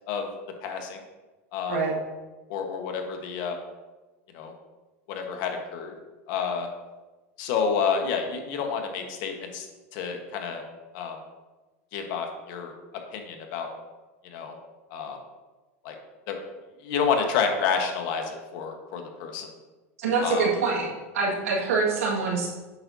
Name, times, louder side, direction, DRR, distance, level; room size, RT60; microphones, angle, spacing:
voice 1, 0.6-1.0 1.5-1.8 2.5-3.6 4.3-4.5 5.1-5.9 6.3-6.7 7.4-9.7 9.9-10.6 10.9-11.2 11.9-12.7 13.1-13.7 14.2-14.5 14.9-15.2 15.8-15.9 16.3-16.4 16.8-19.5 20.2-20.5, left 6 dB, 60° left, 4 dB, 1.3 m, -29 dB
voice 2, 20.0-20.9 21.1-22.5, right 4 dB, 85° right, -2 dB, 1.9 m, -25 dB
8.5 x 6.0 x 2.8 m, 1.2 s
supercardioid pair, 115°, 8 cm